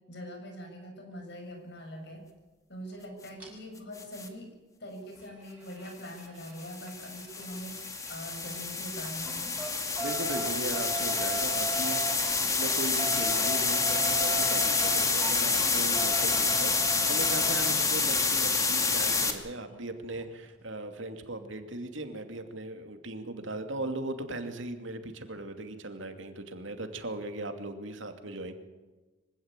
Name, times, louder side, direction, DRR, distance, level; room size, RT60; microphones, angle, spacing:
voice 1, 0.1-2.2 2.7-4.5 4.8-9.5 28.2-28.3, equal, 55° left, 4 dB, 6.6 m, -43 dB
sound 1, 3.4-3.5 5.2-8.7 9.0-17.7 19.4-19.5 19.7-19.8 20.1-20.2, right 2 dB, 10° right, 7.5 m, -39 dB
sound 2, 4.0-4.3 6.4-19.3, left 4 dB, 15° left, 2.3 m, -28 dB
voice 2, 10.0-12.0 12.3-28.5, right 2 dB, 75° right, 7 dB, 2.6 m, -38 dB
25.0 x 16.5 x 9.0 m, 1.2 s
head